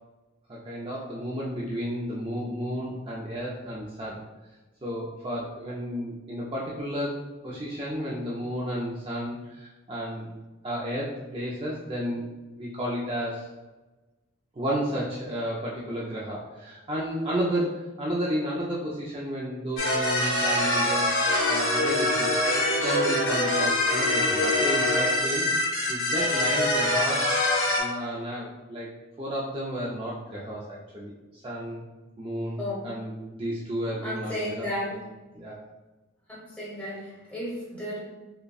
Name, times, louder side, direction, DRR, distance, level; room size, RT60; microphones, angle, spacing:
voice 1, 0.5-4.2 4.8-10.3 10.6-12.3 12.6-13.5 14.5-21.1 21.5-22.4 22.8-25.5 25.9-28.9 29.2-31.8 32.2-32.6 32.8-35.0 35.3-35.6, equal, 25° right, -5 dB, 0.4 m, -32 dB
sound 1, 19.8-27.8, left 1 dB, 75° left, 1.2 m, -24 dB
voice 2, 34.0-35.0 36.3-38.0, left 1 dB, 5° left, -7 dB, 1.0 m, -33 dB
5.1 x 2.2 x 2.3 m, 1.1 s
head